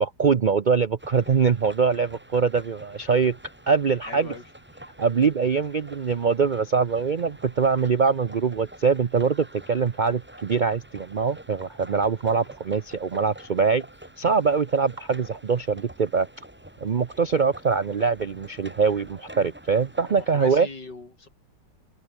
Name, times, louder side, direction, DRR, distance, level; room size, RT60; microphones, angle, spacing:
voice 1, 0.0-3.4 3.7-4.3 5.0-13.8 14.2-16.3 16.8-20.7, right 5 dB, 85° right, 0.4 m, -23 dB
sound 1, 1.0-20.6, right 1 dB, 5° right, 1.5 m, -47 dB
voice 2, 4.1-4.4 20.1-21.3, left 3 dB, 75° left, 5.3 m, -40 dB
omnidirectional pair, 1.9 m